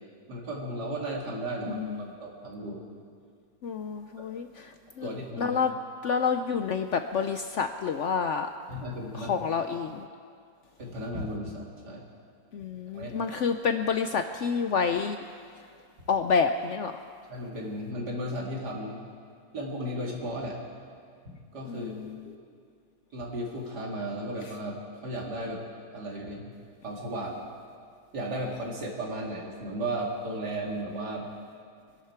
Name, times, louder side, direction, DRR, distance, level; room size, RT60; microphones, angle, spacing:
voice 1, 0.3-2.8 4.2-4.3 5.0-5.6 8.7-9.5 10.8-12.1 12.9-13.3 17.3-19.0 19.5-20.6 21.2-22.3 23.1-25.6 25.9-26.5 26.8-27.4 28.1-31.3, right 1 dB, 70° right, -2 dB, 2.9 m, -35 dB
voice 2, 1.7-2.1 3.6-4.7 5.0-5.1 5.4-5.7 6.0-8.5 9.2-10.1 12.5-15.2 16.1-16.9 21.6-22.2, left 5 dB, 70° left, 7 dB, 0.7 m, -28 dB
24.5 x 11.5 x 4.4 m, 2.2 s
omnidirectional pair, 1.8 m